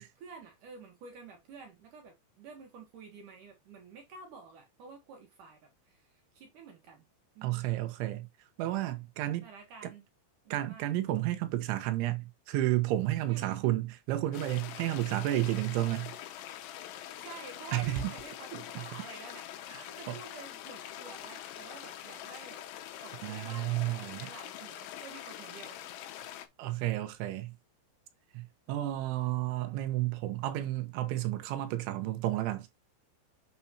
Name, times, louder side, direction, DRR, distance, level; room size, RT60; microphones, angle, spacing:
voice 1, 0.0-7.0 7.4-7.7 9.4-10.0 10.4-10.9 13.3-13.6 17.2-19.5 19.9-22.6 23.0-23.8 24.2-25.8, right 5 dB, 65° right, 2.1 m, -50 dB
voice 2, 7.4-8.3 8.6-9.5 9.8-9.9 10.5-16.1 17.7-18.1 18.5-18.6 19.7-20.2 23.2-24.3 26.6-27.5 28.3-32.7, right 15 dB, 90° right, 3.4 m, -31 dB
sound 1, 14.3-26.5, left 11 dB, 80° left, 3.2 m, -44 dB
7.8 x 7.1 x 2.8 m
omnidirectional pair, 5.3 m